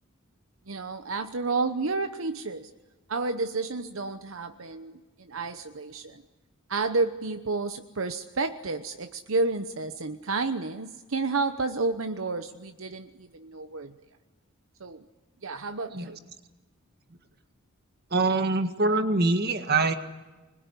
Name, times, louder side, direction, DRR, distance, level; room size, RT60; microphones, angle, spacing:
voice 1, 0.7-2.7 3.1-6.2 6.7-13.9 14.8-15.0 15.4-16.2, right 3 dB, 75° right, 8 dB, 1.0 m, -31 dB
voice 2, 18.1-19.9, right 3 dB, 50° right, 8 dB, 1.8 m, -24 dB
25.5 x 21.0 x 9.9 m, 1.2 s
head